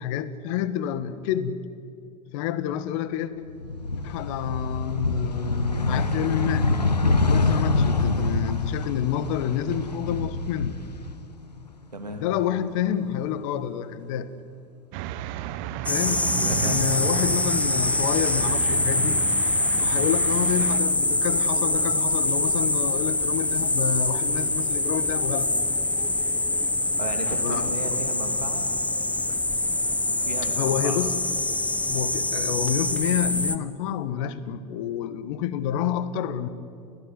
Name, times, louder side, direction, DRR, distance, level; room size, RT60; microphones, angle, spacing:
voice 1, 0.0-1.6 2.3-3.3 4.0-6.7 7.2-10.8 12.2-14.3 15.9-19.2 19.7-25.5 27.4-28.0 30.6-31.2 31.9-36.5, left 9 dB, 55° left, 14 dB, 1.4 m, -28 dB
sound 1, 3.5-11.6 12.0-13.1, left 3 dB, 85° left, 1.0 m, -25 dB
voice 2, 11.9-12.2 16.5-16.9 27.0-28.7 30.1-31.0, right 3 dB, 85° right, 4 dB, 2.6 m, -35 dB
sound 2, 14.9-20.8, right 12 dB, 50° right, 1.3 m, -33 dB
sound 3, 15.9-33.6, left 2 dB, 5° left, 1.2 m, -24 dB
29.5 x 16.0 x 9.6 m, 2.4 s
figure-of-eight pair, 85°, 20 cm